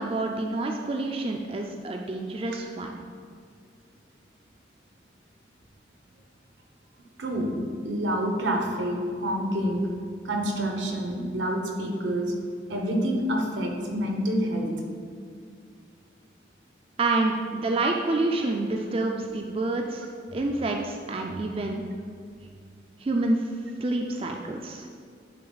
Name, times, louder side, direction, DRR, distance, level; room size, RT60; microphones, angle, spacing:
voice 1, 0.0-3.0 17.0-20.1 20.3-21.8 23.0-23.4 23.8-24.9, right 2 dB, 30° right, 2 dB, 0.4 m, -28 dB
voice 2, 7.2-7.5 7.8-9.9 10.2-12.3 12.7-14.7 21.2-21.4, equal, 90° right, 1 dB, 1.1 m, -27 dB
9.9 x 3.6 x 4.0 m, 2.2 s
head